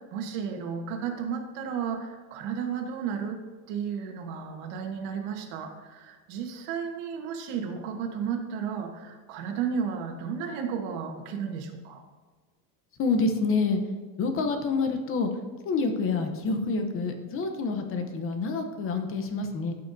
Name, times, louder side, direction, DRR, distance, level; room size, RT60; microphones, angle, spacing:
voice 1, 0.0-12.0, right 7 dB, 80° right, 3 dB, 1.4 m, -33 dB
voice 2, 13.0-13.8 14.2-15.3 15.6-19.7, left 4 dB, 35° left, 6 dB, 0.8 m, -27 dB
13.5 x 5.7 x 2.7 m, 1.4 s
cardioid pair, 165°, 40 cm